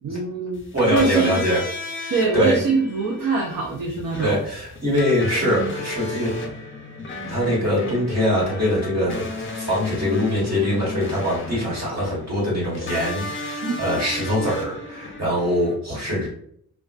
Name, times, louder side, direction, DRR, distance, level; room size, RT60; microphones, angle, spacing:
voice 1, 0.0-1.4 2.1-4.4 13.6-13.7, right 4 dB, 65° right, 0 dB, 0.6 m, -23 dB
sound 1, 0.5-15.7, left 2 dB, 35° left, 0.5 m, -34 dB
voice 2, 0.7-1.6 2.0-2.6 4.2-6.3 7.3-16.3, equal, 45° right, -6 dB, 1.5 m, -23 dB
2.4 x 2.2 x 2.4 m, 0.64 s
wide cardioid pair, 80°, 36 cm